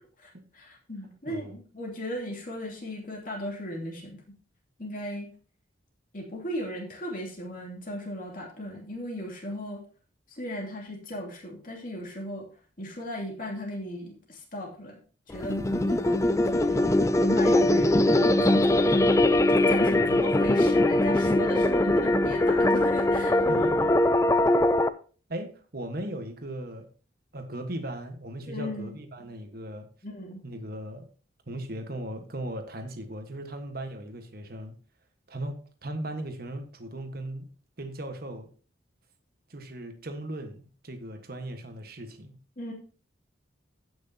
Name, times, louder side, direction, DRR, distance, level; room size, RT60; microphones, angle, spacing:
voice 1, 0.5-4.2 4.8-5.3 6.1-9.8 10.3-12.5 12.8-15.0 15.3-16.8 17.1-23.7 28.5-28.9 30.0-30.4 42.6-42.7, equal, 45° left, 2.7 m, -36 dB
sound 1, 15.3-24.9, left 1 dB, 15° left, 0.4 m, -22 dB
voice 2, 19.8-20.2 23.5-23.9 25.3-26.9 27.3-29.9 30.4-31.1 31.5-34.7 35.3-37.5 37.8-38.5 39.5-42.4, right 1 dB, 50° right, 1.4 m, -37 dB
15.5 x 6.3 x 2.8 m
head